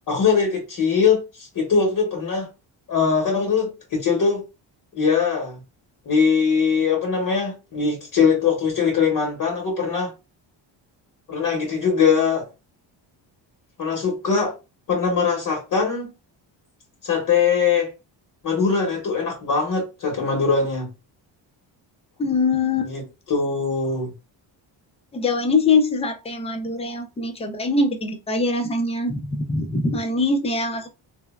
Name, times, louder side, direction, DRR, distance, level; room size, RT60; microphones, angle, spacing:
voice 1, 0.1-2.5 2.9-4.4 4.9-5.6 6.1-10.1 11.3-12.5 13.8-14.5 14.9-16.1 17.0-17.9 18.4-20.9 22.8-23.0 23.3-24.1, left 5 dB, 45° left, 0.9 m, -21 dB
voice 2, 22.2-22.9 25.1-30.9, left 3 dB, 15° left, 0.4 m, -23 dB
3.3 x 2.0 x 2.2 m
cardioid pair, 130°, 46 cm